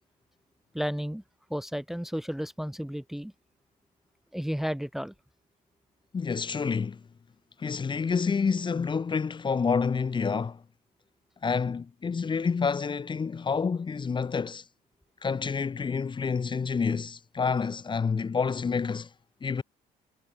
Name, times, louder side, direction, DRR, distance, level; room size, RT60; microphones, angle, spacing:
voice 1, 0.7-1.2 1.5-3.3 4.3-5.1, equal, ahead, 1.2 m, -32 dB
voice 2, 6.1-7.0 7.6-10.6 11.4-14.6 15.2-19.1 19.4-19.6, left 5 dB, 30° left, 1.5 m, -28 dB
cardioid pair, 110°, 17 cm